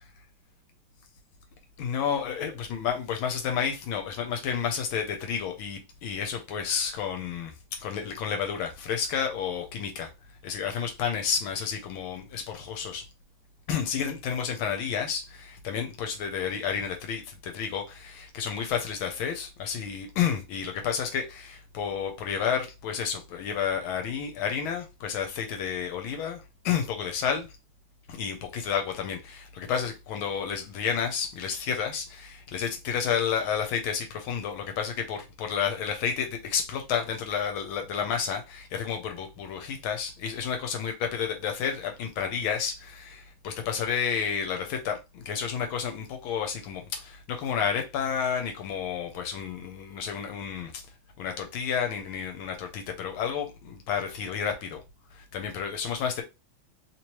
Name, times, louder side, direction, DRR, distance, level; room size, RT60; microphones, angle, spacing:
voice 1, 1.8-10.1 10.4-13.1 13.7-27.5 28.1-50.8 51.2-54.8 55.1-56.2, left 7 dB, 75° left, 1.4 m, -31 dB
3.3 x 2.9 x 2.9 m
omnidirectional pair, 2.4 m